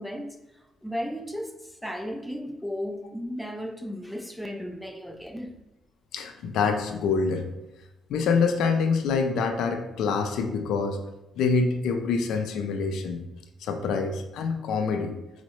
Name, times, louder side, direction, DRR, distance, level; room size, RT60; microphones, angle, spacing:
voice 1, 0.0-5.5, equal, ahead, 4 dB, 0.4 m, -35 dB
voice 2, 6.1-7.5 8.1-11.0 11.4-13.2 13.6-15.1, left 5 dB, 80° left, 6 dB, 0.3 m, -26 dB
4.5 x 2.0 x 3.0 m, 0.95 s
cardioid pair, 90°, 0 cm